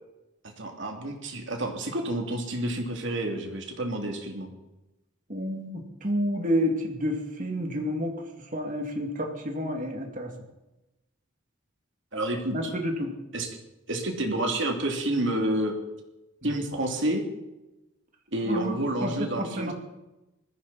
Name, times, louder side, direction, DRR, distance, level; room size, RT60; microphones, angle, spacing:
voice 1, 0.4-4.5 12.1-12.7 13.3-13.6 13.9-15.7 16.4-17.2 18.3-19.7, right 1 dB, 60° right, 2 dB, 2.8 m, -29 dB
voice 2, 5.3-8.2 8.5-10.3 12.5-13.1 18.5-19.1 19.4-19.7, equal, 40° right, 2 dB, 2.5 m, -29 dB
20.5 x 15.0 x 4.2 m, 0.98 s
head